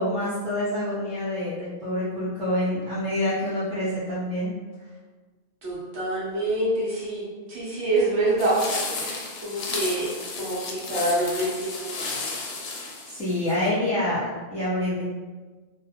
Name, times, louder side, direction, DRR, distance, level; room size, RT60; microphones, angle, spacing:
voice 1, 0.0-4.5 13.0-14.2 14.5-15.0, left 1 dB, 5° left, -13 dB, 1.0 m, -27 dB
voice 2, 5.6-10.1 10.4-12.2, right 1 dB, 65° right, -7 dB, 1.1 m, -26 dB
sound 1, 8.4-13.7, left 3 dB, 65° left, 0.7 m, -33 dB
2.5 x 2.3 x 2.8 m, 1.4 s
omnidirectional pair, 1.2 m